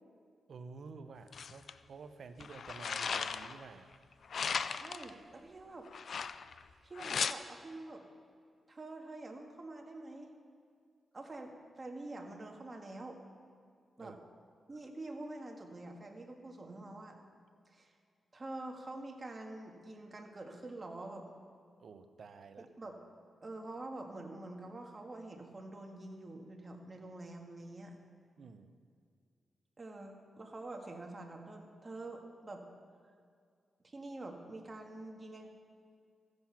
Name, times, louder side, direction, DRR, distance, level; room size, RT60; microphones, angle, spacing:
voice 1, 0.5-3.9 14.0-14.2 21.8-22.7 28.4-28.7, right 4 dB, 65° right, 9 dB, 0.7 m, -51 dB
sound 1, 1.3-1.7 2.4-3.6 4.3-5.1 5.9-6.6 7.0-7.3, left 6 dB, 65° left, 0.4 m, -36 dB
voice 2, 4.7-5.9 6.8-8.0 8.7-10.3 11.1-13.2 14.0-14.2 14.7-17.2 17.7-17.9 18.3-21.3 22.6-23.0 23.4-28.0 29.8-32.6 33.8-35.5, right 2 dB, 35° right, 2 dB, 1.8 m, -46 dB
14.5 x 8.0 x 5.8 m, 2.2 s
cardioid pair, 65°, 0 cm